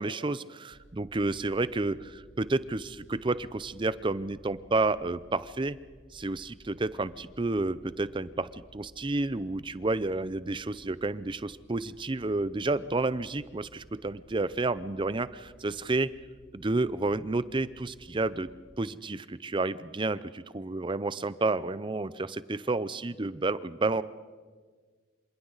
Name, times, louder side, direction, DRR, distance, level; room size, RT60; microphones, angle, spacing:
voice 1, 0.0-5.8 6.1-16.1 16.5-18.5 18.8-24.0, right 2 dB, 25° right, 16 dB, 0.5 m, -30 dB
sound 1, 0.7-18.8, equal, 5° right, 3.6 m, -57 dB
27.5 x 26.5 x 4.0 m, 1.5 s
head